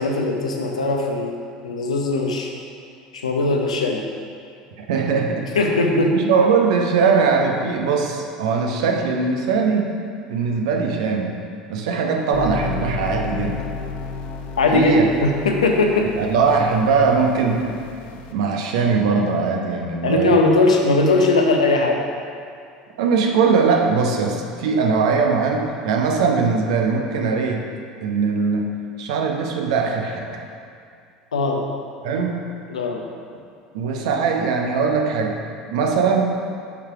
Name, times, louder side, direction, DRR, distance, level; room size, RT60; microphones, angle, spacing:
voice 1, 0.0-1.3 1.6-2.5 3.1-4.0 5.5-6.1 14.6-16.1 20.0-22.0 31.3-31.6 32.7-33.0, left 2 dB, 90° left, 1 dB, 0.8 m, -19 dB
voice 2, 4.8-5.5 5.9-9.9 10.3-11.4 11.7-13.6 14.7-15.1 16.1-17.8 18.3-20.4 23.0-27.6 28.0-28.7 29.0-30.5 32.0-32.4 33.7-35.4 35.7-36.3, right 5 dB, 75° right, 2 dB, 0.9 m, -20 dB
sound 1, 12.3-18.3, left 4 dB, 50° left, 0.8 m, -32 dB
7.0 x 5.0 x 4.7 m, 2.4 s
hypercardioid pair, 75°, 3 cm